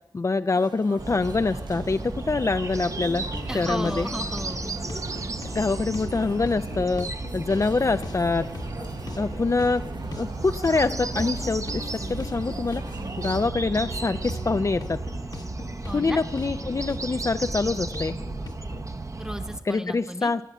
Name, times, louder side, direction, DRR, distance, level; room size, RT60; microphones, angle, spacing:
voice 1, 0.1-3.3 3.5-4.1 5.5-7.1 7.3-8.5 9.2-9.8 10.2-12.8 13.2-15.0 15.9-18.2 19.7-20.4, left 3 dB, 45° left, 11 dB, 0.4 m, -25 dB
sound 1, 0.5-13.5, right 3 dB, 80° right, 0.9 m, -43 dB
sound 2, 1.0-19.6, right 3 dB, 45° right, 0.7 m, -34 dB
sound 3, 3.0-18.8, left 3 dB, 60° left, 1.0 m, -41 dB
voice 2, 3.5-4.7 15.9-16.2 19.2-20.3, equal, 10° right, 9 dB, 0.9 m, -34 dB
16.0 x 6.0 x 9.2 m, 0.94 s
wide cardioid pair, 70°, 8 cm